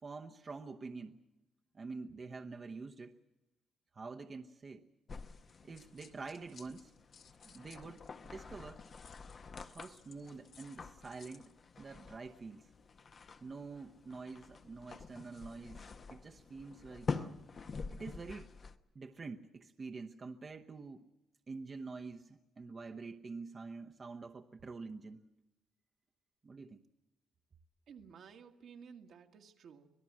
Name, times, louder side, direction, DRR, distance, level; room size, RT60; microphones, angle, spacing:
voice 1, 0.0-1.2 1.7-3.2 3.9-4.9 5.6-6.9 7.5-8.8 9.6-12.7 13.4-17.4 17.9-18.5 18.9-21.1 21.5-25.2 26.4-26.8, right 4 dB, 35° right, 3 dB, 1.0 m, -47 dB
sound 1, 5.1-18.8, left 5 dB, 45° left, 1.0 m, -47 dB
sound 2, 5.5-8.3 8.8-11.5, left 6 dB, 65° left, 2.0 m, -61 dB
voice 2, 27.9-29.9, right 6 dB, 70° right, 3 dB, 1.8 m, -54 dB
25.5 x 18.5 x 7.6 m, 0.94 s
cardioid pair, 90°, 0 cm